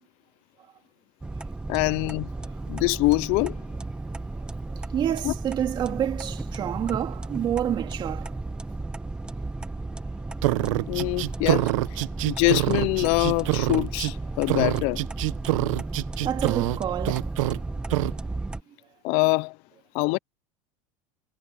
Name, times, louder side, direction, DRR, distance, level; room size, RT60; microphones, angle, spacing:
sound 1, 1.2-18.6, right 2 dB, 5° right, 0.9 m, -34 dB
voice 1, 1.7-2.3 2.7-3.6 5.2-5.3 10.9-11.7 12.3-15.0 19.0-19.6 19.9-20.2, left 26 dB, 40° left, 0.3 m, -24 dB
voice 2, 4.3-8.4 14.3-14.4 16.2-17.3, right 10 dB, 25° right, 2.7 m, -29 dB
sound 2, 10.4-14.1 14.5-16.8 17.0-17.6 17.9-18.1, right 20 dB, 75° right, 1.0 m, -25 dB
supercardioid pair, 170°, 17 cm